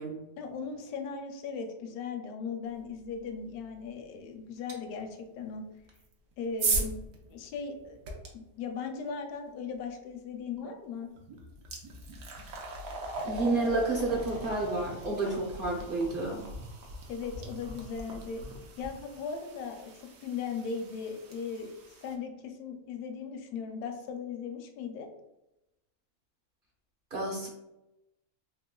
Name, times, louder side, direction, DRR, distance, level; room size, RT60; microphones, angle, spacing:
voice 1, 0.4-5.6 6.4-7.0 7.3-8.0 8.3-11.1 17.1-18.4 18.8-19.9 20.2-21.7 22.0-25.1, left 5 dB, 80° left, 4 dB, 1.0 m, -38 dB
sound 1, 4.7-4.8 5.9-8.3 10.6-10.7 11.2-22.1, right 3 dB, 70° right, 1.1 m, -38 dB
voice 2, 13.2-16.4 27.1-27.5, right 2 dB, 50° right, -2 dB, 0.7 m, -30 dB
3.6 x 3.1 x 2.3 m, 0.92 s
omnidirectional pair, 1.6 m